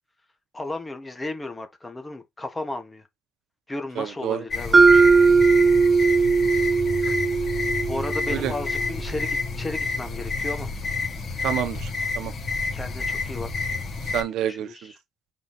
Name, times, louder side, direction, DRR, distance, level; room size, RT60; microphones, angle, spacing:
voice 1, 0.5-3.0 3.7-5.1 6.4-6.5 7.0-7.2 7.9-10.7 12.7-13.5 14.4-14.9, left 2 dB, 15° left, 1.4 m, -34 dB
voice 2, 4.0-4.4 8.3-8.5 11.4-12.3 14.0-14.9, right 11 dB, 80° right, 1.0 m, -29 dB
sound 1, 4.5-14.2, left 3 dB, 40° left, 2.9 m, -29 dB
Mallet percussion, 4.7-8.8, right 4 dB, 25° right, 0.4 m, -18 dB
5.5 x 4.1 x 4.1 m
cardioid pair, 150°, 0 cm